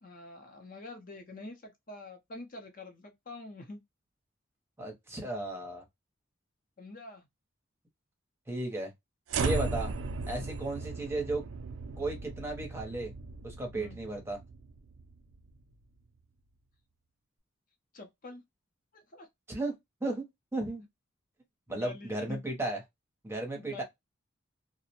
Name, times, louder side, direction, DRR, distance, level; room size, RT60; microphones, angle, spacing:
voice 1, 0.0-3.8 6.8-7.3 13.7-14.0 17.9-18.4 18.9-19.3 21.7-22.4 23.6-23.8, left 2 dB, 40° left, 0.6 m, -46 dB
voice 2, 4.8-5.8 8.5-8.9 9.4-9.9 10.3-11.4 12.0-13.1 13.4-14.4 19.5-19.7 20.0-20.2 20.5-20.8 21.7-22.8 23.2-23.8, right 2 dB, 10° right, 0.7 m, -34 dB
sound 1, 9.3-15.6, right 4 dB, 75° right, 0.4 m, -37 dB
2.4 x 2.1 x 2.8 m
head